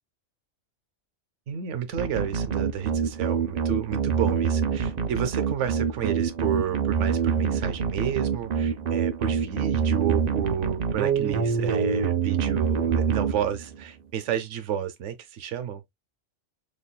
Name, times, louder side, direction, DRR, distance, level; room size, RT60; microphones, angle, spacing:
voice 1, 1.5-15.8, right 9 dB, 75° right, 1.0 m, -31 dB
sound 1, 2.0-13.8, right 6 dB, 55° right, 0.4 m, -26 dB
4.1 x 2.9 x 2.2 m
omnidirectional pair, 1.3 m